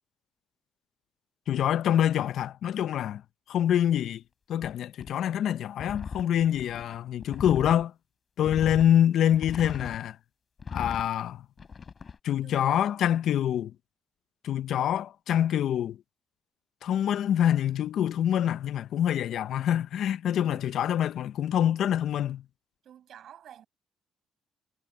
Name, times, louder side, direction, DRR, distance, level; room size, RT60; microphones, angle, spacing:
voice 1, 1.5-3.2 3.5-4.2 4.5-7.9 8.4-10.2 10.7-11.4 12.2-13.7 14.4-16.0 16.8-22.4, left 10 dB, 75° left, 0.7 m, -26 dB
sound 1, 4.6-4.7 5.0-5.1 5.8-7.8 8.5-8.9 9.3-10.0 10.6-11.1 11.6-12.2, left 5 dB, 40° left, 6.6 m, -39 dB
voice 2, 12.4-13.1 20.5-20.7 22.8-23.7, right 10 dB, 70° right, 7.2 m, -51 dB
cardioid pair, 90°, 0 cm